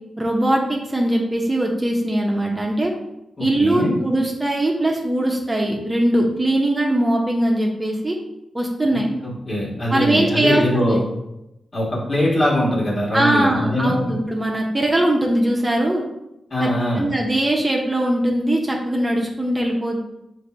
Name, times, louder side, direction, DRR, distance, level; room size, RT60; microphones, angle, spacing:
voice 1, 0.2-2.9 3.4-8.2 8.5-9.1 9.9-11.0 13.1-16.0 16.6-16.7 17.0-20.0, right 1 dB, 25° right, -1 dB, 0.8 m, -20 dB
voice 2, 3.4-3.9 9.2-11.0 11.7-14.1 16.5-17.0, left 1 dB, 45° left, -4 dB, 1.5 m, -22 dB
3.8 x 2.6 x 4.3 m, 0.89 s
supercardioid pair, 50°, 0 cm